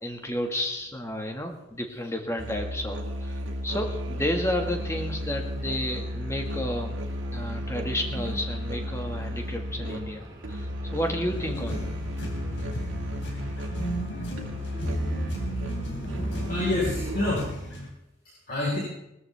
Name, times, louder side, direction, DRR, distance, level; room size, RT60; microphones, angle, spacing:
voice 1, 0.0-7.0 7.3-11.9, left 1 dB, 15° left, 3 dB, 1.6 m, -32 dB
Musical instrument, 2.4-17.7, equal, 80° right, 2.1 m, -34 dB
sound 1, 3.7-17.2, right 1 dB, 20° right, 2.2 m, -48 dB
sound 2, 11.3-17.9, equal, 70° left, 3.3 m, -34 dB
voice 2, 16.0-17.7 18.5-18.8, left 2 dB, 50° left, -6 dB, 4.2 m, -29 dB
19.5 x 14.0 x 3.4 m, 0.87 s
head